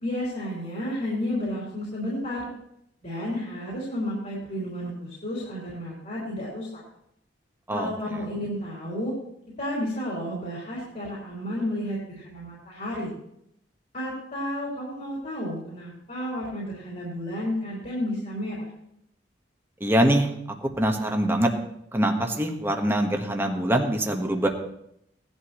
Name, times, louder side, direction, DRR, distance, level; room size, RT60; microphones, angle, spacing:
voice 1, 0.0-2.5 3.0-6.8 7.7-9.1 9.6-13.1 13.9-18.7, left 1 dB, 45° left, -6 dB, 4.0 m, -32 dB
voice 2, 19.8-20.3 20.8-21.5 21.9-24.5, right 1 dB, 15° right, 3 dB, 1.4 m, -23 dB
18.0 x 11.5 x 3.2 m, 0.75 s
head